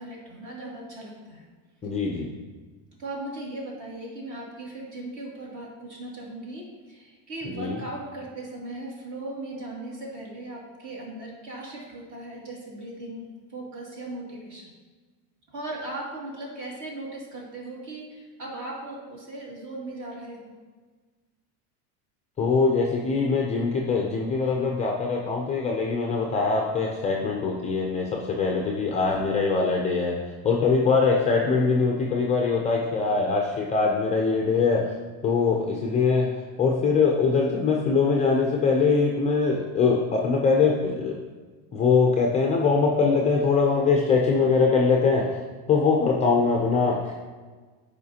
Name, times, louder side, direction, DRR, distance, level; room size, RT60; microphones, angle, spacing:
voice 1, 0.0-1.5 3.0-14.7 15.5-20.5, right 2 dB, 40° right, -3 dB, 2.4 m, -38 dB
voice 2, 1.8-2.3 7.4-7.8 22.4-30.2 30.4-34.8 35.2-36.3 36.6-41.1 41.7-45.4 45.7-47.1, left 4 dB, 15° left, 0 dB, 0.4 m, -22 dB
12.5 x 5.0 x 2.8 m, 1.4 s
cardioid pair, 160°, 44 cm